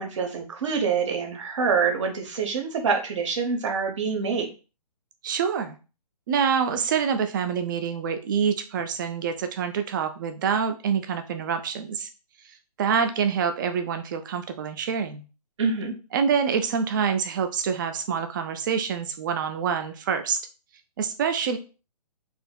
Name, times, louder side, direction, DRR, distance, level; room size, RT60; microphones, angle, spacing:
voice 1, 0.0-4.5 15.6-15.9, right 5 dB, 50° right, 4 dB, 0.9 m, -26 dB
voice 2, 5.2-5.8 6.3-12.1 12.8-15.2 16.1-20.4 21.0-21.6, right 6 dB, 30° right, 8 dB, 0.4 m, -26 dB
4.2 x 2.7 x 2.2 m, 0.33 s
figure-of-eight pair, 130°, 20 cm